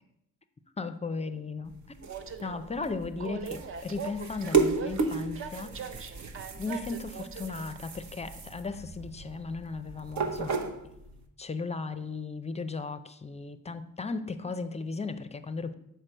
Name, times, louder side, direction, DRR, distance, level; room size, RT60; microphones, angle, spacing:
voice 1, 0.8-1.8 2.4-6.2 6.5-10.6 11.4-15.7, left 4 dB, 20° left, 11 dB, 0.5 m, -36 dB
sound 1, 1.7-11.2, right 4 dB, 65° right, 1.0 m, -34 dB
Train, 2.0-10.6, right 6 dB, 45° right, 0.6 m, -43 dB
6.0 x 4.8 x 6.5 m, 0.81 s
cardioid pair, 120°, 31 cm